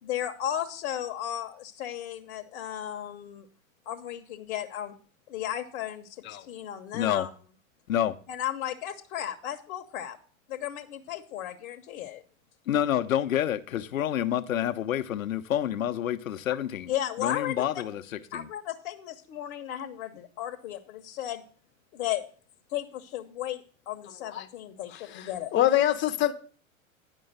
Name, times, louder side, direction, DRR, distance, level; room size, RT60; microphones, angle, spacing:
voice 1, 0.0-3.5 3.9-4.9 5.3-6.1 6.5-7.3 8.3-10.2 10.5-12.2 16.9-17.6 18.3-21.4 21.9-22.2 22.7-25.5, left 11 dB, 55° left, 1.1 m, -34 dB
voice 2, 6.9-7.3 7.9-8.2 12.7-16.9 17.2-18.5, left 11 dB, 75° left, 0.9 m, -28 dB
voice 3, 24.9-26.3, left 12 dB, 25° left, 0.9 m, -26 dB
9.9 x 5.5 x 6.7 m
hypercardioid pair, 100°, 41 cm